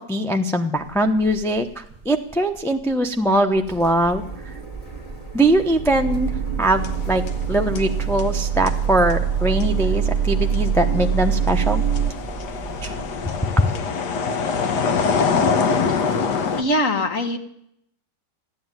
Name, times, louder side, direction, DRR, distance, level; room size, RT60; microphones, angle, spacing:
voice 1, 0.1-4.2 5.3-11.9 12.8-12.9, right 1 dB, 5° left, 3 dB, 0.5 m, -21 dB
sound 1, 0.9-1.6 1.8-2.2 2.6-2.7 2.9-3.0 3.7-12.1, right 8 dB, 50° right, 0.5 m, -24 dB
Printer, 3.5-13.9, right 4 dB, 20° left, 1.9 m, -38 dB
sound 2, 6.6-7.5 7.8-16.6, left 5 dB, 75° left, 1.7 m, -25 dB
voice 2, 16.6-17.4, left 1 dB, 50° left, 7 dB, 1.7 m, -21 dB
14.5 x 11.0 x 9.0 m, 0.73 s
omnidirectional pair, 1.9 m